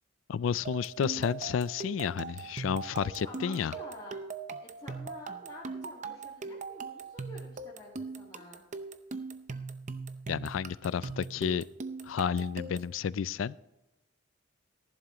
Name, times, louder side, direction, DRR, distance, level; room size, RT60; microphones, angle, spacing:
voice 1, 0.3-3.7 10.3-11.6 12.0-13.6, left 7 dB, 80° left, 20 dB, 0.4 m, -31 dB
sound 1, 0.6-13.0, right 4 dB, 40° right, 0.6 m, -40 dB
voice 2, 3.0-4.2 4.6-8.6, left 1 dB, 20° left, -6 dB, 1.9 m, -49 dB
14.5 x 11.0 x 3.0 m, 0.97 s
head